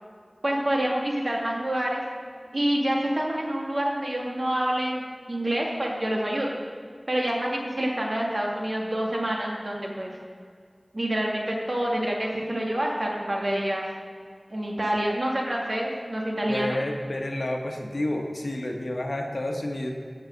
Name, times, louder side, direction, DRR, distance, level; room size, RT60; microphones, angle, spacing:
voice 1, 0.4-2.0 2.5-6.5 7.1-10.2 10.9-13.8 14.5-16.8, right 1 dB, 60° right, -2 dB, 1.7 m, -27 dB
voice 2, 16.5-19.9, left 1 dB, 70° left, 2 dB, 1.0 m, -30 dB
13.0 x 5.5 x 5.1 m, 2.1 s
wide cardioid pair, 50°, 0 cm